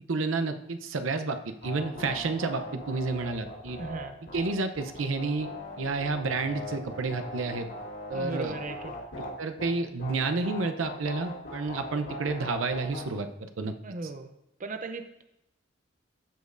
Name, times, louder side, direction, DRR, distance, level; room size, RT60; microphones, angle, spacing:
voice 1, 0.1-3.8 4.3-5.5 5.8-7.7 8.1-8.5 9.2-13.7, right 3 dB, 85° right, 7 dB, 0.6 m, -30 dB
sound 1, 1.6-9.3 9.6-9.7 10.0-13.0, left 1 dB, 65° left, 2.7 m, -40 dB
voice 2, 3.8-4.2 8.1-8.9 13.8-14.3 14.6-15.2, right 3 dB, 40° right, 7 dB, 0.5 m, -37 dB
14.0 x 5.3 x 2.5 m, 0.84 s
head